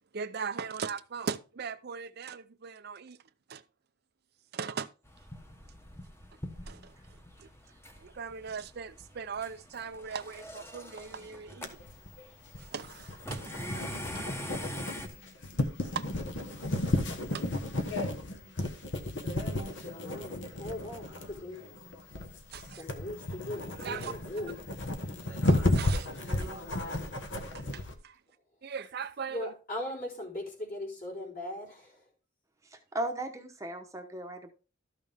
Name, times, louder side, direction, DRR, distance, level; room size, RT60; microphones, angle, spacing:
voice 1, 0.1-3.2 3.5-3.6 4.5-4.9 6.7-6.9 7.4-7.5 8.0-11.8 12.6-13.6 13.9-14.0 15.9-16.0 17.3-17.5 22.5-22.8 23.8-24.1 25.5-26.1 26.4-26.5 27.5-28.2 28.6-29.5, right 6 dB, 50° right, 0.5 m, -39 dB
sound 1, 5.0-15.1, equal, 15° left, 1.2 m, -44 dB
sound 2, 11.6-27.9, left 1 dB, 65° left, 1.4 m, -33 dB
voice 2, 20.0-21.6 22.8-24.6 29.3-32.0, left 1 dB, 45° left, 4.0 m, -39 dB
voice 3, 32.9-34.5, right 1 dB, 15° right, 1.0 m, -36 dB
13.0 x 6.4 x 3.5 m
head